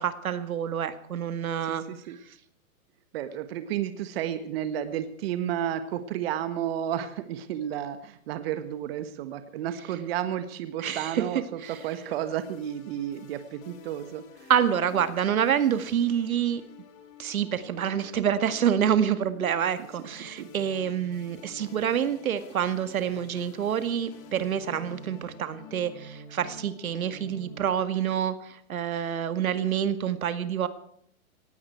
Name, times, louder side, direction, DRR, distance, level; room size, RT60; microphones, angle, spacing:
voice 1, 0.0-1.8 10.8-11.2 11.6-11.7 14.5-16.6 17.2-30.7, right 9 dB, 75° right, 12 dB, 2.0 m, -27 dB
voice 2, 1.6-2.2 3.1-14.5 20.0-20.5, right 10 dB, 45° right, 10 dB, 1.7 m, -32 dB
sound 1, 11.6-27.6, left 3 dB, 30° left, 3.5 m, -49 dB
19.0 x 16.5 x 4.6 m, 0.67 s
hypercardioid pair, 145°, 42 cm